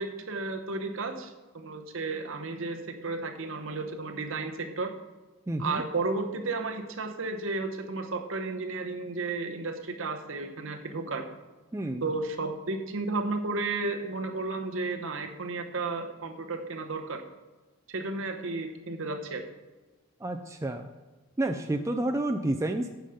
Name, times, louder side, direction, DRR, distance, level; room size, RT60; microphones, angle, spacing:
voice 1, 0.0-4.9 5.6-11.3 12.0-17.2 17.9-19.4, right 3 dB, 60° right, 5 dB, 0.9 m, -33 dB
voice 2, 5.5-5.8 11.7-12.0 20.2-20.9 21.4-22.9, right 1 dB, 15° right, 6 dB, 0.4 m, -29 dB
9.0 x 5.1 x 7.0 m, 1.3 s
head